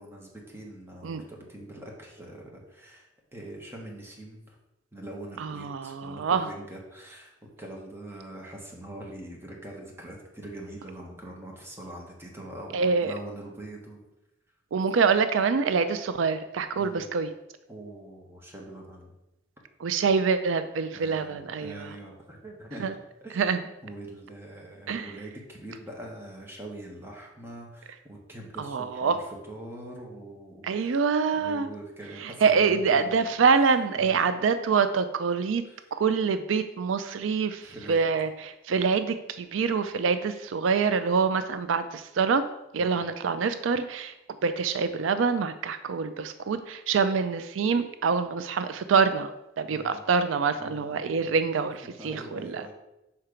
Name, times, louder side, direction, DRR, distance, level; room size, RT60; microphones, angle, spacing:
voice 1, 0.0-4.6 4.9-7.3 7.6-14.0 16.7-17.1 17.7-19.1 20.9-22.9 23.2-30.9 31.3-33.2 33.9-34.2 35.6-35.8 37.6-38.1 42.8-43.0 49.7-50.0 50.6-51.4 51.8-52.7, right 1 dB, 15° right, -1 dB, 1.3 m, -43 dB
voice 2, 5.4-6.5 12.7-13.1 14.7-17.3 19.8-21.9 22.8-22.9 23.4-23.6 24.9-25.1 28.6-29.2 30.6-31.7 32.2-35.6 35.9-37.6 37.9-42.4 42.7-44.1 44.4-49.3 49.6-52.7, right 5 dB, 85° right, 11 dB, 0.4 m, -25 dB
5.8 x 4.4 x 5.0 m, 0.91 s
head